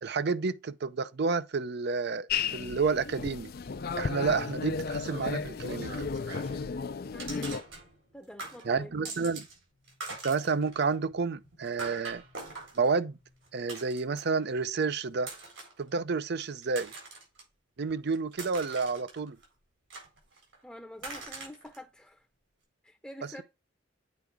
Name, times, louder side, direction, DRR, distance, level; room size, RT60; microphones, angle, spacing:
voice 1, 0.0-2.3 2.5-3.5 4.0-6.1 8.7-9.5 10.2-12.2 12.8-13.1 13.5-15.3 15.8-16.9 17.8-19.4, right 4 dB, 60° right, 0.6 m, -30 dB
sound 1, 2.3-7.6, left 5 dB, 50° left, 0.5 m, -34 dB
sound 2, 4.9-6.7 7.2-8.1 8.4-9.6 9.8-14.4 15.2-15.8 16.4-17.4 17.9-19.4 19.9-20.6 21.0-21.8, right 3 dB, 85° right, 4.3 m, -44 dB
voice 2, 7.1-7.6 8.1-9.3 20.6-22.3 22.8-23.4, left 1 dB, 5° left, 0.7 m, -47 dB
8.4 x 4.6 x 3.6 m
head